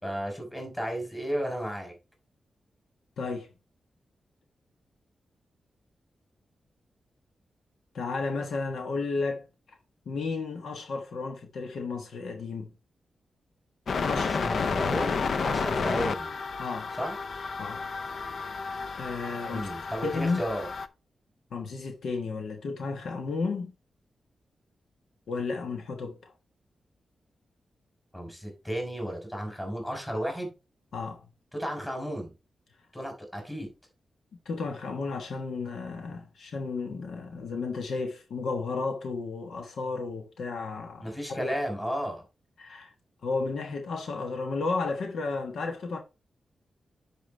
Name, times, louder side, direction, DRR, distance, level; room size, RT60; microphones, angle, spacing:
voice 1, 0.0-1.9 14.2-16.3 17.0-17.1 19.5-20.7 28.1-30.5 31.5-32.3 32.9-33.7 41.0-42.2, equal, 10° left, 3.8 m, -33 dB
voice 2, 3.2-3.5 7.9-9.4 10.0-12.7 14.1-14.3 16.6-16.9 17.6-17.9 19.0-19.7 20.0-20.4 21.5-23.7 25.3-26.3 30.9-31.3 34.4-41.5 42.6-42.9 43.2-46.0, left 4 dB, 85° left, 1.3 m, -33 dB
sound 1, 13.9-20.9, left 5 dB, 60° left, 0.6 m, -31 dB
10.5 x 5.0 x 3.3 m
wide cardioid pair, 135°, 0 cm